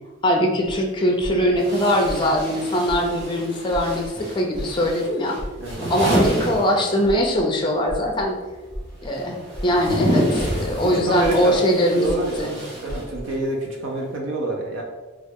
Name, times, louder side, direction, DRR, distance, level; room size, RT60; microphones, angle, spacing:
voice 1, 0.2-5.4 5.9-8.4 9.0-12.5, equal, 25° left, 1 dB, 0.4 m, -21 dB
sound 1, 0.6-0.7 1.2-1.6 2.0-2.4 2.9-3.2 3.7-4.1 4.5-4.9 5.4-5.7 6.2-6.6 7.0-7.4 7.9-8.2 8.7-9.1 9.5-9.9 10.4-10.7 11.2-11.6 12.0-12.4 12.9-13.2, equal, 25° right, 0.6 m, -33 dB
sound 2, 0.6-0.7 1.6-7.4 7.6-13.5, right 1 dB, 65° right, 1.2 m, -29 dB
voice 2, 5.6-6.1 10.8-11.6 11.9-12.6 12.8-14.8, right 2 dB, 90° right, 0 dB, 0.5 m, -28 dB
3.1 x 2.3 x 3.4 m, 1.3 s
head